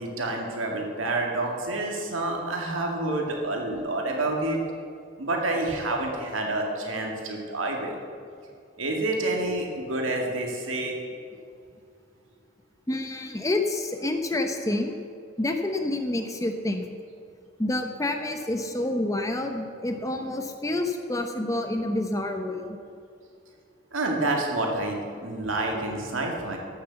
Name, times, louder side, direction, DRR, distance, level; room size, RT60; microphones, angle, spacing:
voice 1, 0.0-4.6 5.2-7.9 8.8-11.0 23.9-26.6, right 2 dB, 85° right, 1 dB, 2.1 m, -28 dB
voice 2, 12.9-15.0 15.4-16.9 17.6-22.6, left 1 dB, 15° left, 5 dB, 0.8 m, -28 dB
13.0 x 6.8 x 7.0 m, 2.3 s
head